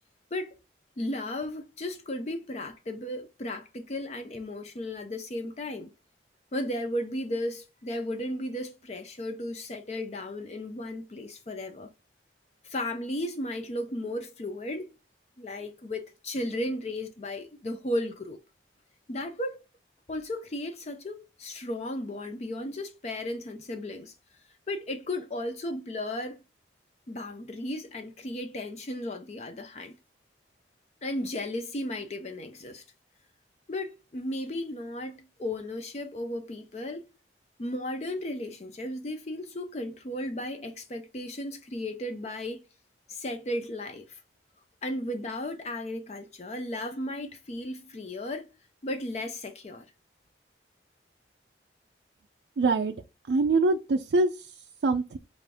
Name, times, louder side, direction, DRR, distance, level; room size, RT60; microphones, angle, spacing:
voice 1, 1.0-5.9 6.5-11.9 12.6-14.9 15.4-18.4 19.1-19.6 20.1-24.1 24.7-26.4 27.1-29.9 31.0-32.8 33.7-37.1 37.6-42.6 43.1-44.2 44.8-48.5 48.8-49.9, left 1 dB, 35° left, 0.4 m, -35 dB
voice 2, 52.6-53.0 53.3-55.2, right 3 dB, 70° right, 0.4 m, -25 dB
5.0 x 2.5 x 3.4 m
head